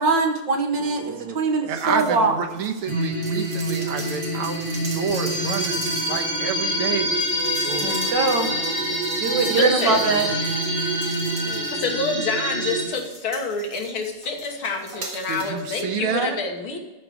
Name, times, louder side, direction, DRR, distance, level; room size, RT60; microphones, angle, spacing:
voice 1, 0.0-2.3 7.8-8.5 9.2-10.3, right 3 dB, 60° right, 3 dB, 1.9 m, -22 dB
voice 2, 0.8-1.4 1.7-4.6 4.9-7.1 7.6-8.1 8.6-9.5 11.3-11.8 15.3-16.4, right 6 dB, 85° right, 4 dB, 2.0 m, -30 dB
sound 1, 1.7-2.2 2.5-12.2 12.7-15.6 15.9-16.0, right 3 dB, 45° right, 1.7 m, -40 dB
sound 2, 2.9-12.8, right 1 dB, 25° right, 3.7 m, -26 dB
voice 3, 9.5-10.0 11.7-16.8, left 4 dB, 75° left, 2 dB, 2.3 m, -27 dB
12.5 x 4.8 x 7.8 m, 1.2 s
omnidirectional pair, 2.4 m